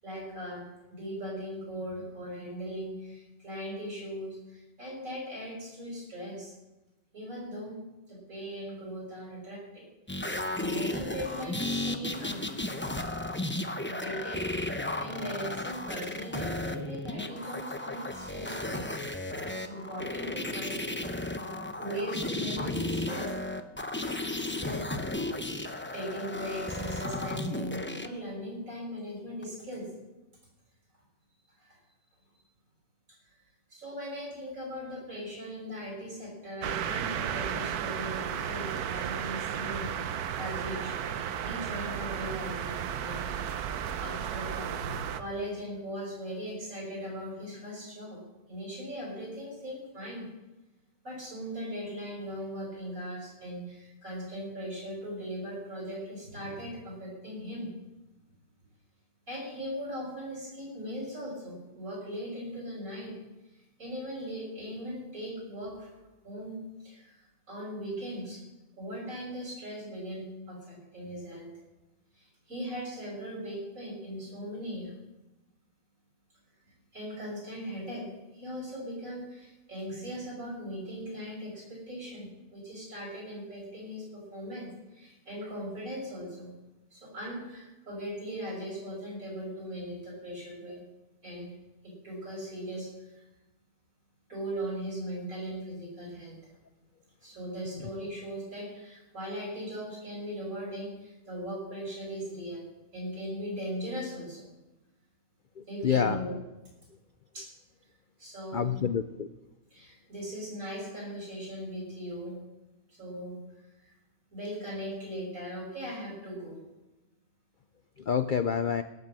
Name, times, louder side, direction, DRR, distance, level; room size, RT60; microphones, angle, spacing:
voice 1, 0.0-6.5 7.1-7.7 8.1-9.9 10.3-12.5 13.8-14.4 15.0-18.8 19.4-21.5 21.8-23.3 24.4-25.0 25.9-29.8 31.6-31.8 33.2-33.3 33.7-39.9 40.4-40.9 41.4-43.6 44.0-48.2 48.5-50.3 51.0-57.7 59.3-63.1 63.8-65.9 66.2-66.6 66.8-67.2 67.5-68.4 68.8-71.5 72.2-74.9 76.6-78.1 78.3-86.5 86.9-90.8 91.2-91.5 91.8-93.2 94.3-96.4 97.2-102.6 102.9-104.5 105.7-106.3 107.3-107.5 108.2-108.7 109.7-112.3 112.9-113.4 113.8-113.9 114.3-116.6, equal, 60° right, -3 dB, 7.4 m, -39 dB
sound 1, 10.1-28.1 29.4-29.5, left 1 dB, 10° left, 0.6 m, -34 dB
sound 2, 36.6-45.2, right 9 dB, 85° right, 1.3 m, -34 dB
voice 2, 105.6-106.2 108.5-109.3 118.0-118.8, left 7 dB, 70° left, 12 dB, 0.4 m, -28 dB
17.5 x 8.3 x 7.5 m, 1.0 s
omnidirectional pair, 1.6 m